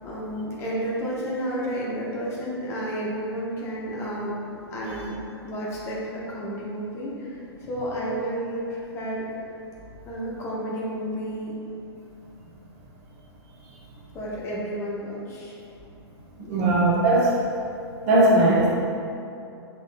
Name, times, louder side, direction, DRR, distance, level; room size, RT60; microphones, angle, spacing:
voice 1, 0.0-4.4 4.7-5.2 5.4-7.4 7.7-9.4 10.1-11.5 14.1-15.6 16.5-16.7, equal, 20° left, -6 dB, 0.7 m, -31 dB
voice 2, 16.4-17.4 18.1-18.8, right 2 dB, 35° right, -4 dB, 0.6 m, -19 dB
5.7 x 3.0 x 2.5 m, 2.6 s
figure-of-eight pair, 110°, 14 cm